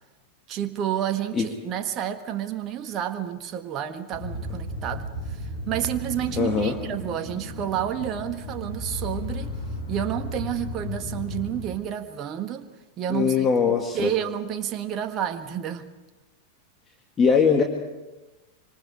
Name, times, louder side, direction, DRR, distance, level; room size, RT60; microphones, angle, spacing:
voice 1, 0.5-9.5 9.9-12.7 13.0-15.9, right 10 dB, 35° right, 7 dB, 1.5 m, -30 dB
sound 1, 4.1-11.6, left 1 dB, 65° left, 7.9 m, -34 dB
voice 2, 6.4-6.8 13.1-14.1 17.2-17.6, left 6 dB, 25° left, 3 dB, 2.1 m, -21 dB
26.0 x 25.5 x 4.9 m, 1.1 s
figure-of-eight pair, 90°, 0 cm